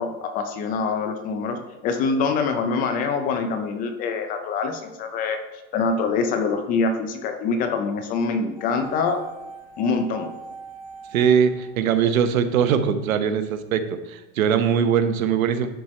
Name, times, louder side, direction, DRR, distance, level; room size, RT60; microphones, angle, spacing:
voice 1, 0.0-5.4 5.7-9.2 9.8-10.3, left 4 dB, 20° left, 7 dB, 0.5 m, -25 dB
sound 1, 8.6-12.7 12.9-13.0, right 4 dB, 10° right, 1.7 m, -41 dB
voice 2, 11.1-15.7, right 7 dB, 90° right, 9 dB, 1.0 m, -21 dB
10.5 x 4.5 x 4.3 m, 1.0 s
supercardioid pair, 150°, 40 cm